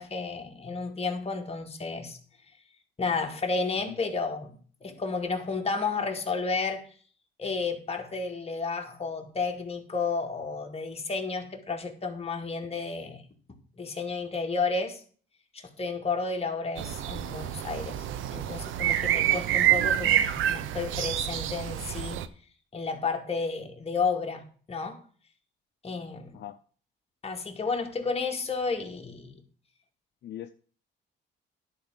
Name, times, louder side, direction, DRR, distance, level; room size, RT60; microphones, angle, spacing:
voice 1, 0.0-2.2 3.0-6.8 7.4-13.2 13.8-15.0 15.5-22.2 22.7-25.0 25.8-26.4 27.2-29.4, left 4 dB, 30° left, 2.2 m, -32 dB
voice 2, 3.9-4.0 20.0-20.3 26.3-26.6 30.2-30.5, left 12 dB, 60° left, 0.6 m, -41 dB
sound 1, 16.8-22.3, right 11 dB, 80° right, 0.8 m, -27 dB
11.0 x 4.7 x 7.4 m
cardioid pair, 90°, 20 cm